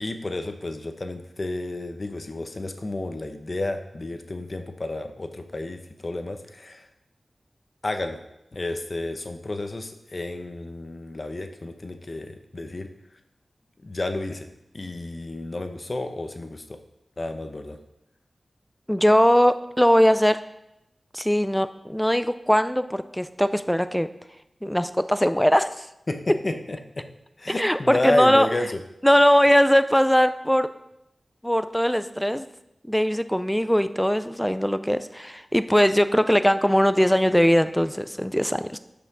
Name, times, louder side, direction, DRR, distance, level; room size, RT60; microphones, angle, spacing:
voice 1, 0.0-6.9 7.8-8.2 8.5-12.9 13.8-14.5 14.7-16.8 17.2-17.8 26.1-27.1 27.4-28.8, left 2 dB, 45° left, 6 dB, 0.9 m, -31 dB
voice 2, 18.9-20.4 21.1-24.1 24.6-25.9 27.5-28.5 29.0-30.7 31.4-32.5 32.9-38.8, equal, 5° left, 12 dB, 0.5 m, -20 dB
6.9 x 5.7 x 6.1 m, 0.85 s
wide cardioid pair, 60°, 0 cm